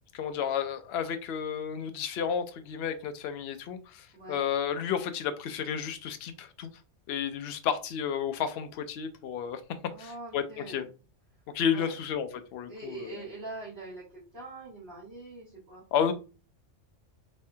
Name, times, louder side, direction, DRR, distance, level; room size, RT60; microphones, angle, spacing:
voice 1, 0.1-6.7 7.1-9.6 10.0-10.9 11.5-13.2 15.9-16.1, left 8 dB, 65° left, 8 dB, 0.8 m, -32 dB
voice 2, 9.9-10.9 11.7-11.9 12.7-15.8, right 2 dB, 55° right, -8 dB, 2.0 m, -43 dB
3.4 x 3.2 x 2.7 m, 0.33 s
omnidirectional pair, 1.2 m